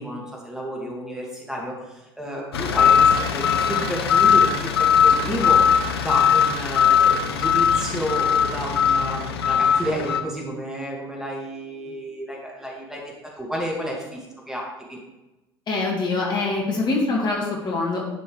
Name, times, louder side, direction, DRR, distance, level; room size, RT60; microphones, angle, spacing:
voice 1, 0.0-5.7 6.0-15.0, equal, 5° right, -3 dB, 2.2 m, -31 dB
sound 1, 2.5-10.2, left 7 dB, 70° left, 0.7 m, -19 dB
voice 2, 15.7-18.1, left 3 dB, 35° left, -2 dB, 2.2 m, -24 dB
11.0 x 6.0 x 3.4 m, 1.0 s
figure-of-eight pair, 70°, 13 cm